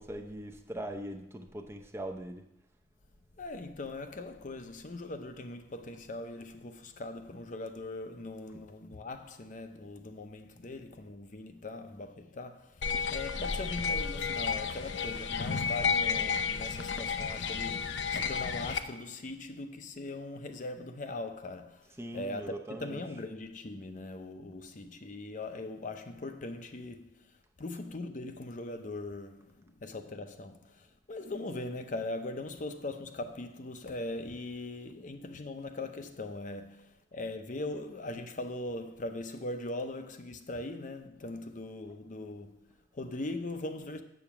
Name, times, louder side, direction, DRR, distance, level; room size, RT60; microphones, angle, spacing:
voice 1, 0.0-2.5 8.5-8.6 22.0-23.0, right 1 dB, 15° right, 0.7 m, -41 dB
voice 2, 3.4-44.0, left 2 dB, 45° left, 0.7 m, -40 dB
sound 1, 12.8-18.8, left 5 dB, 85° left, 0.6 m, -32 dB
7.8 x 7.2 x 6.0 m
head